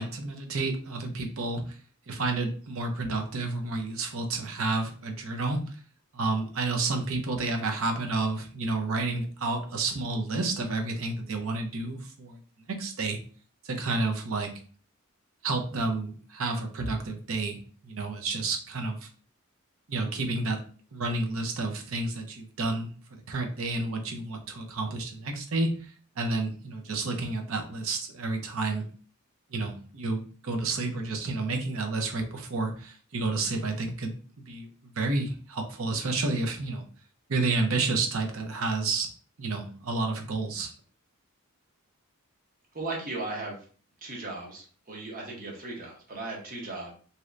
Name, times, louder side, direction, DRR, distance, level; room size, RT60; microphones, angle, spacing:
voice 1, 0.0-1.6 2.1-5.6 6.1-12.4 12.7-13.2 13.6-14.5 15.4-19.0 19.9-20.6 20.9-22.9 23.3-28.9 29.5-34.2 34.5-36.8 37.3-39.1 39.4-40.7, right 3 dB, 70° right, 4 dB, 0.6 m, -30 dB
voice 2, 42.7-43.6 44.0-46.9, right 2 dB, 40° right, -1 dB, 0.9 m, -37 dB
3.1 x 2.8 x 2.5 m, 0.42 s
head